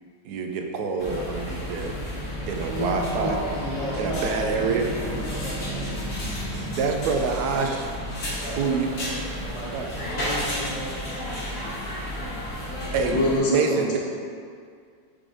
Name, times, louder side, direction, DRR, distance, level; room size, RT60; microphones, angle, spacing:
voice 1, 0.2-2.0 2.5-3.4 4.0-4.9 6.8-7.9 8.6-8.9 9.7-9.9 12.9-14.0, right 5 dB, 70° right, 3 dB, 1.0 m, -26 dB
sound 1, 1.0-13.4, equal, 55° left, 1.9 m, -32 dB
voice 2, 2.7-5.9 8.2-9.0 9.4-10.9, right 1 dB, 30° right, -8 dB, 0.6 m, -33 dB
voice 3, 13.1-14.0, left 1 dB, 80° left, -4 dB, 1.8 m, -23 dB
5.0 x 3.8 x 4.8 m, 2.2 s
omnidirectional pair, 2.0 m